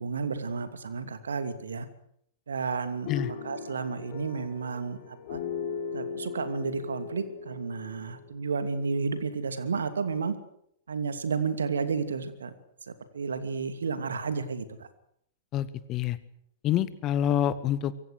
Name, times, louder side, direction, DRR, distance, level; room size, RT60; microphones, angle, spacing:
voice 1, 0.0-1.9 2.5-5.0 5.3-5.4 5.9-10.4 10.9-12.5 12.9-14.9, right 5 dB, 70° right, 10 dB, 2.7 m, -32 dB
sound 1, 3.1-9.1, left 6 dB, 45° left, 5.2 m, -38 dB
voice 2, 15.5-16.2 16.6-17.9, left 10 dB, 30° left, 15 dB, 1.6 m, -27 dB
25.0 x 24.0 x 6.7 m, 0.70 s
figure-of-eight pair, 100°, 0 cm